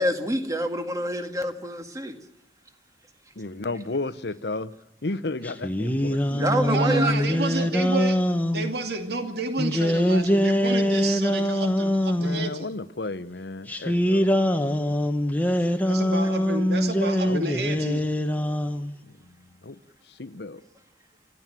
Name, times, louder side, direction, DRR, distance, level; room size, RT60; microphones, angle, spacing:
voice 1, 0.0-2.2 6.3-7.3 10.3-10.4, right 1 dB, 20° right, 1.8 m, -27 dB
voice 2, 3.4-4.7 5.0-6.8 12.1-14.3 17.2-17.4 19.7-19.8 20.1-20.6, left 2 dB, 70° left, 0.9 m, -33 dB
sound 1, 5.4-8.7 9.6-12.5 13.7-18.9, equal, 10° left, 1.2 m, -23 dB
voice 3, 6.7-8.2 8.5-12.7 15.8-18.0, right 2 dB, 65° right, 2.5 m, -30 dB
29.5 x 14.0 x 7.6 m
head